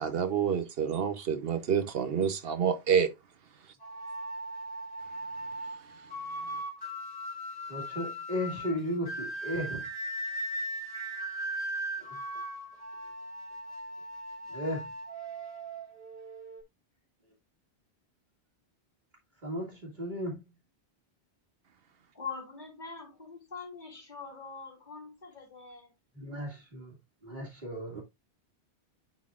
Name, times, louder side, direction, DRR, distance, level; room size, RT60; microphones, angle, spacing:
voice 1, 0.0-3.1 28.0-28.1, right 7 dB, 65° right, 1.0 m, -28 dB
sound 1, 3.8-16.6, right 1 dB, 20° left, 3.3 m, -38 dB
voice 2, 7.7-9.8 14.5-14.9 19.4-20.4 26.2-26.9 27.2-28.0, equal, 45° right, 2.2 m, -35 dB
voice 3, 22.1-25.9, left 5 dB, 40° left, 3.3 m, -43 dB
10.5 x 4.1 x 2.4 m
omnidirectional pair, 1.1 m